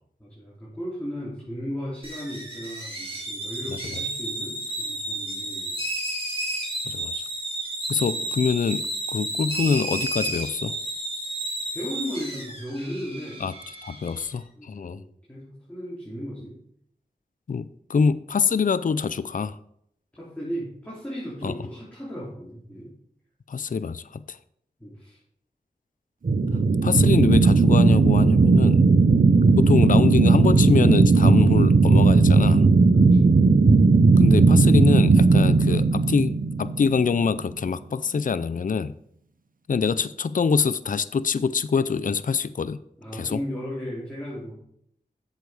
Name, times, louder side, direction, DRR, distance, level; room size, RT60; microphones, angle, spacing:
voice 1, 0.2-5.8 11.7-13.4 14.5-16.5 20.2-22.9 24.8-25.2 32.9-33.2 43.0-44.5, equal, 10° left, -7 dB, 3.1 m, -35 dB
sound 1, 2.0-14.3, right 1 dB, 30° right, 4.2 m, -32 dB
voice 2, 3.7-4.0 6.9-7.2 7.9-10.7 13.4-13.5 13.8-15.0 17.5-19.6 21.4-21.5 23.5-24.4 26.8-28.8 29.6-32.7 34.2-38.9 39.7-42.8 43.1-43.4, left 5 dB, 50° left, 14 dB, 0.4 m, -25 dB
sound 2, 26.2-37.2, right 4 dB, 55° right, 0.6 m, -17 dB
8.1 x 6.9 x 4.8 m, 0.70 s
wide cardioid pair, 50°, 17 cm